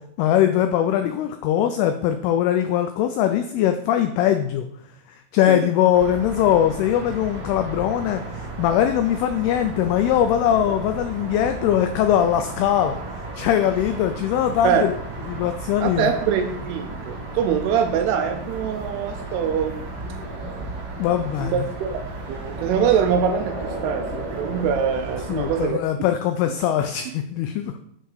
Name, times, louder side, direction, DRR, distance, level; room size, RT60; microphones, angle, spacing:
voice 1, 0.2-4.7 5.3-13.0 13.4-14.9 15.3-16.1 21.0-21.5 25.3-27.7, left 10 dB, 90° left, 7 dB, 2.2 m, -21 dB
sound 1, 5.9-25.7, right 2 dB, 55° right, 2.2 m, -34 dB
voice 2, 15.8-19.8 21.4-22.0 22.3-24.1 24.3-25.8, right 7 dB, 80° right, 6 dB, 2.4 m, -23 dB
7.9 x 3.7 x 6.4 m, 0.71 s
omnidirectional pair, 5.0 m